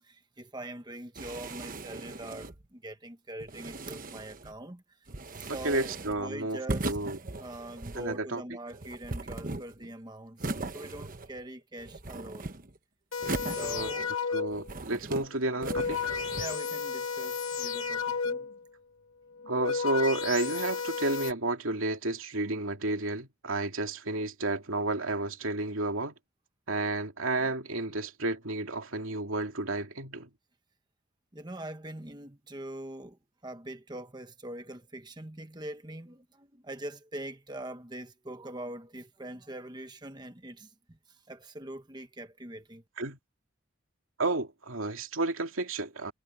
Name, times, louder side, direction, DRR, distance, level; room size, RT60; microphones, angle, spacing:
voice 1, 0.0-4.8 5.3-7.0 7.4-12.5 13.5-14.2 15.2-15.3 16.3-18.5 31.3-41.0 41.3-42.8, right 1 dB, 20° right, 1.2 m, -43 dB
sound 1, 1.1-2.6 3.4-4.5 5.1-6.2 6.7-8.1 8.7-9.9 10.4-11.5 11.8-12.8 13.2-14.2 14.5-15.3 15.6-16.6, right 2 dB, 40° right, 1.2 m, -38 dB
voice 2, 5.5-7.2 7.9-8.4 13.6-13.9 14.3-16.2 19.5-26.1 26.7-30.3 43.0-43.2 44.2-46.1, right 2 dB, 85° right, 2.6 m, -31 dB
sound 2, 13.1-14.8 15.4-18.7 19.3-21.3, left 5 dB, 85° left, 2.6 m, -33 dB
head